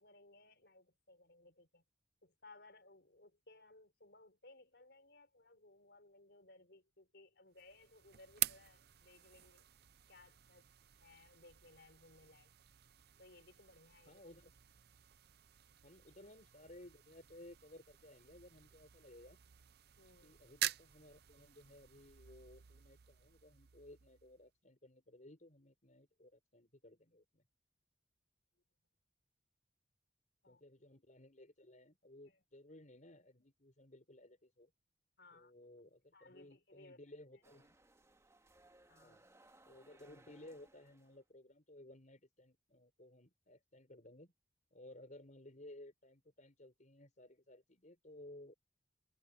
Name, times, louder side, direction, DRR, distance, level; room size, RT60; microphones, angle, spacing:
voice 1, 0.0-1.8 2.2-9.7 10.1-10.7 10.9-12.5 13.2-14.2 20.0-20.4 30.4-30.6 32.2-32.4 35.2-35.5 36.1-37.0 37.3-37.4 38.9-39.2, left 2 dB, 65° left, 4.8 m, -62 dB
sound 1, 7.5-24.5, right 13 dB, 60° right, 0.6 m, -48 dB
voice 2, 14.1-14.5 15.8-19.4 20.2-27.4 30.5-34.7 35.3-37.8 39.0-39.2 39.7-44.3 44.7-48.6, left 1 dB, 45° left, 5.4 m, -58 dB
sound 2, 37.4-41.2, right 2 dB, 15° right, 2.0 m, -66 dB
head